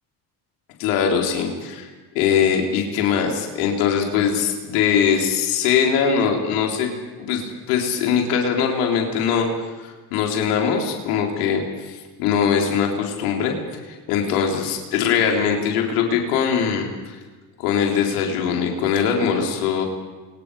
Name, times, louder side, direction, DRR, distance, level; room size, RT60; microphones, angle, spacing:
voice 1, 0.8-1.9 2.1-6.9 7.2-9.5 9.8-13.5 13.9-17.2 17.6-19.8, left 7 dB, 85° left, 1 dB, 4.0 m, -21 dB
29.5 x 24.5 x 5.0 m, 1.3 s
hypercardioid pair, 60°, 45 cm